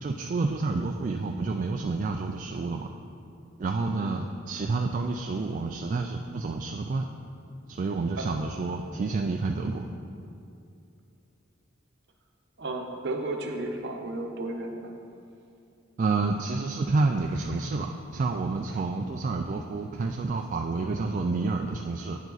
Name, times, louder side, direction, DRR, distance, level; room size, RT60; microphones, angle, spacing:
voice 1, 0.0-2.9 3.6-7.1 7.7-9.9 16.0-22.2, right 3 dB, 40° right, 3 dB, 0.3 m, -29 dB
voice 2, 12.6-14.9 17.6-17.7 18.7-18.8, right 2 dB, 55° right, 3 dB, 0.8 m, -34 dB
9.0 x 7.2 x 4.0 m, 2.5 s
head